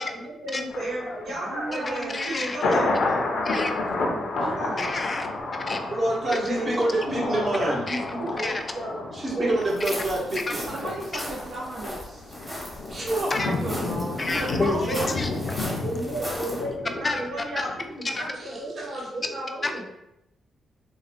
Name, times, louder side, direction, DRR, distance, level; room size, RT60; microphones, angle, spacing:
voice 1, 0.0-4.7 6.3-9.6 15.8-19.8, right 1 dB, 80° right, -6 dB, 1.4 m, -33 dB
Thunder, 0.7-17.8 18.2-18.3, left 2 dB, 75° left, 0.6 m, -31 dB
voice 2, 1.4-2.4 4.4-5.1 10.7-13.0 13.4-14.8, right 2 dB, 65° right, -5 dB, 0.6 m, -35 dB
voice 3, 2.1-2.6 3.4-3.9 4.8-5.3 5.7-5.9 7.9-8.0 8.4-8.6 10.5-10.6 11.1-11.2 13.3-13.5 14.2-15.6 16.7-16.8 17.0-17.2 17.6-17.7 18.0-18.3 19.6-19.9, left 3 dB, 30° left, 6 dB, 0.3 m, -29 dB
voice 4, 5.8-7.8 9.1-10.7 12.9-13.3 14.9-15.1 18.3-18.8, right 1 dB, 35° right, -4 dB, 1.1 m, -27 dB
sound 1, 9.7-16.6, equal, 5° right, 1.0 m, -37 dB
4.0 x 2.2 x 2.5 m, 0.85 s
cardioid pair, 95°, 0 cm